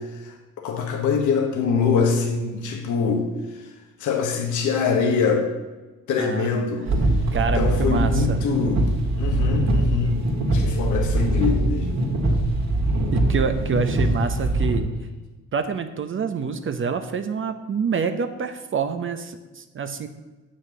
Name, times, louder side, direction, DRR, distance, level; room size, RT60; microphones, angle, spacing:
voice 1, 0.0-3.7 4.0-5.5 6.1-6.9 7.4-8.8 9.2-10.2 10.5-11.9, left 5 dB, 80° left, 2 dB, 1.5 m, -24 dB
voice 2, 6.2-6.6 7.3-8.4 13.1-14.9 15.5-20.1, right 5 dB, 40° right, 8 dB, 0.8 m, -27 dB
sound 1, 6.8-14.8, right 1 dB, 60° right, 2.4 m, -22 dB
7.4 x 6.4 x 7.7 m, 1.2 s
cardioid pair, 90°, 30 cm